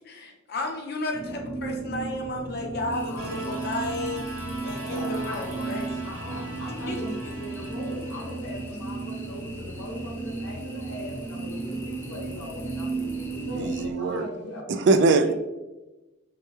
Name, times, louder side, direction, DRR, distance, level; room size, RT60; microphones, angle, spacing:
voice 1, 0.0-5.8 6.9-7.0 7.2-7.3, left 2 dB, 50° left, 2 dB, 0.8 m, -33 dB
sound 1, 1.1-13.9, right 3 dB, 40° right, 1.1 m, -34 dB
sound 2, 2.9-13.9, left 2 dB, 10° left, 0.6 m, -47 dB
voice 2, 3.1-3.7 4.8-14.9, left 1 dB, 75° left, -2 dB, 1.3 m, -40 dB
sound 3, 3.2-8.4, right 2 dB, 85° right, 0.8 m, -41 dB
voice 3, 13.5-14.3 14.7-15.3, right 3 dB, 55° right, 8 dB, 0.3 m, -21 dB
5.9 x 2.3 x 3.2 m, 1.1 s
head